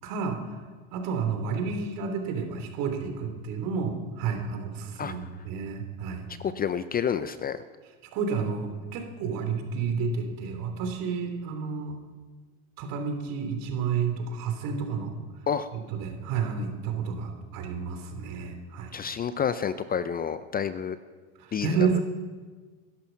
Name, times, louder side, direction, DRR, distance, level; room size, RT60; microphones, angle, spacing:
voice 1, 0.0-0.6 0.9-6.3 8.1-12.0 12.8-15.2 15.7-18.9 21.4-22.0, right 5 dB, 55° right, 5 dB, 3.3 m, -30 dB
voice 2, 6.4-7.6 15.5-15.7 18.9-21.0 21.5-22.0, left 7 dB, 25° left, 13 dB, 0.6 m, -29 dB
20.5 x 11.5 x 5.8 m, 1.4 s
hypercardioid pair, 90°, 39 cm